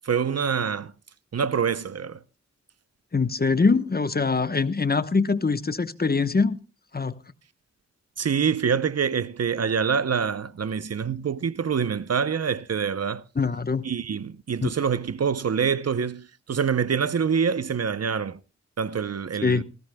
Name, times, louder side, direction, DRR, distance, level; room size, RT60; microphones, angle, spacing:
voice 1, 0.0-0.9 1.3-2.2 8.2-13.2 13.8-18.4 18.8-19.6, right 6 dB, 60° right, 0.7 m, -25 dB
voice 2, 3.1-6.6 6.9-7.1 13.4-13.9 14.6-14.7 19.4-19.6, left 4 dB, 35° left, 1.0 m, -23 dB
19.0 x 16.5 x 2.2 m
cardioid pair, 65°, 29 cm